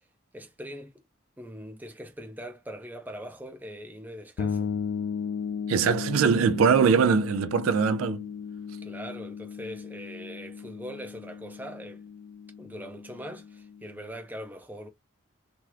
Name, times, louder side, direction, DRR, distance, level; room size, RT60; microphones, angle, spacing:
voice 1, 0.3-1.0 1.4-4.7 8.8-12.0 12.6-14.9, equal, 10° right, 0.5 m, -41 dB
sound 1, 4.4-14.0, left 6 dB, 75° left, 0.3 m, -36 dB
voice 2, 5.7-8.3, right 6 dB, 85° right, 0.4 m, -22 dB
2.9 x 2.4 x 3.1 m
head